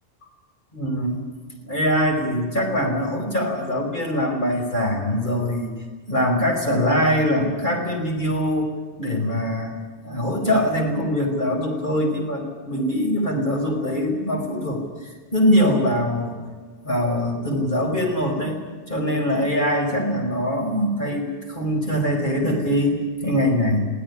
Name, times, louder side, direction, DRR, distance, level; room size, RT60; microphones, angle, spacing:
voice 1, 0.7-1.3 1.6-5.7 6.1-8.7 9.0-9.7 10.0-16.4 16.8-18.6 18.9-23.9, equal, 45° left, 1 dB, 5.7 m, -23 dB
23.5 x 16.5 x 9.9 m, 1.5 s
omnidirectional pair, 1.2 m